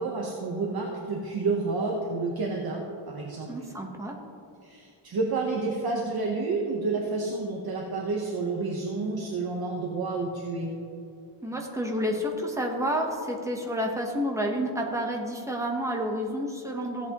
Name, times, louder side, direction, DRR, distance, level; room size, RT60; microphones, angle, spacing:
voice 1, 0.0-3.5 4.6-10.7, right 3 dB, 50° right, -1 dB, 1.0 m, -30 dB
voice 2, 3.5-4.2 11.4-17.1, equal, 5° right, 0 dB, 1.0 m, -30 dB
15.5 x 8.3 x 3.0 m, 2.6 s
wide cardioid pair, 180°, 46 cm